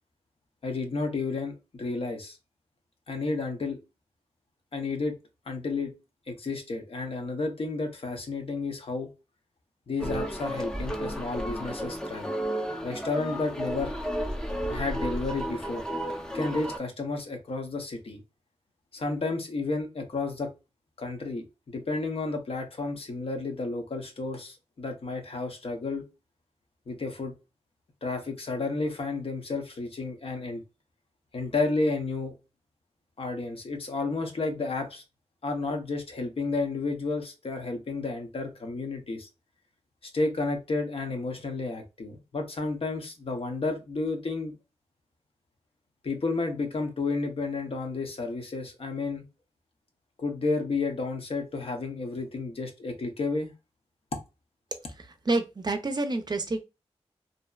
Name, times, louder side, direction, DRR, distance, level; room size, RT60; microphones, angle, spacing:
voice 1, 0.6-2.4 3.1-3.8 4.7-5.2 5.5-5.9 6.3-9.1 9.9-12.3 12.8-13.9 14.7-15.8 16.3-18.2 18.9-20.5 21.0-21.4 21.7-26.0 26.9-27.3 28.0-30.6 31.3-32.3 33.2-35.0 35.4-39.3 40.0-44.6 46.0-49.2 50.2-53.5, left 3 dB, 60° left, 0.7 m, -31 dB
sound 1, 10.0-16.8, equal, 5° left, 0.6 m, -32 dB
voice 2, 55.0-56.6, right 2 dB, 40° right, 0.5 m, -28 dB
2.6 x 2.1 x 2.2 m
cardioid pair, 50°, 11 cm